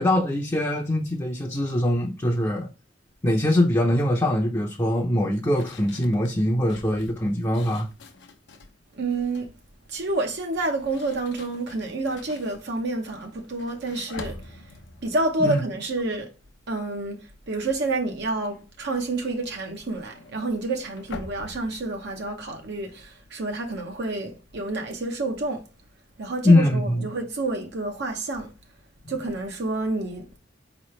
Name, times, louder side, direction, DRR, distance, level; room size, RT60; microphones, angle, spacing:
voice 1, 0.0-2.7 3.2-7.9 15.4-15.6 26.4-27.0, left 1 dB, 15° left, 0.6 m, -22 dB
sound 1, 5.6-8.8 9.1-9.6 10.5-16.7 17.0-17.4 17.7-23.1, left 3 dB, 65° left, 0.7 m, -46 dB
voice 2, 8.9-9.5 9.9-14.6 15.0-16.3 16.7-25.6 26.2-28.5 29.1-30.3, right 2 dB, 60° right, 0.8 m, -29 dB
4.7 x 3.1 x 3.1 m
head